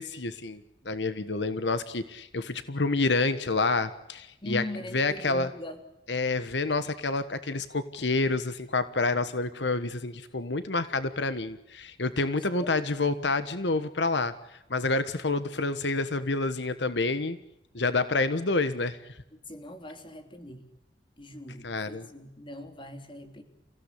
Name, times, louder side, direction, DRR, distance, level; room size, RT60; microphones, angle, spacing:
voice 1, 0.0-4.6 4.9-5.5 6.1-17.4 17.7-19.0 21.6-22.1, left 3 dB, 80° left, 12 dB, 1.4 m, -28 dB
voice 2, 4.4-5.8 12.2-13.2 19.3-20.7 21.2-23.4, left 1 dB, 30° left, 6 dB, 3.3 m, -41 dB
29.5 x 16.5 x 8.5 m, 0.88 s
head